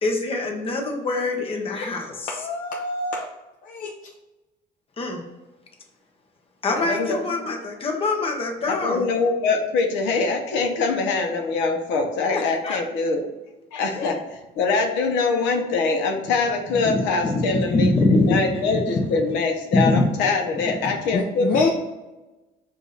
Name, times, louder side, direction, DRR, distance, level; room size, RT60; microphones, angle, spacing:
voice 1, 0.0-2.3 5.0-5.2 6.6-9.1 12.3-12.8 13.9-14.1 16.8-19.1 19.7-20.0, left 2 dB, 30° left, 2 dB, 0.9 m, -24 dB
voice 2, 2.3-3.3 3.6-3.9 21.1-21.7, left 3 dB, 45° left, 0 dB, 0.6 m, -25 dB
voice 3, 6.7-7.2 8.7-13.2 13.7-17.9 18.3-21.5, left 4 dB, 85° left, 3 dB, 0.8 m, -23 dB
4.9 x 2.6 x 4.0 m, 1.1 s
cardioid pair, 120°, 19 cm